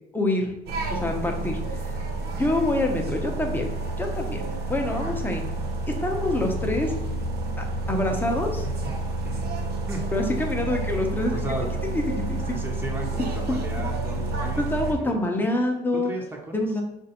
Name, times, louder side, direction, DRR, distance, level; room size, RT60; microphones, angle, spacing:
voice 1, 0.1-0.5 0.9-1.9 2.4-3.6 4.0-4.4 4.7-5.4 5.9-6.9 7.6-8.7 10.1-11.4 11.9-12.4 13.5-13.6 14.6-16.1 16.5-16.8, left 2 dB, 10° left, 2 dB, 0.8 m, -26 dB
sound 1, 0.7-14.9, right 2 dB, 70° right, 0.8 m, -30 dB
voice 2, 4.9-5.2 8.6-8.9 9.2-9.5 9.9-10.1 11.3-11.7 12.5-15.3 15.9-16.7, right 2 dB, 15° right, -1 dB, 0.9 m, -35 dB
4.8 x 2.6 x 4.2 m, 0.86 s
cardioid pair, 110°, 17 cm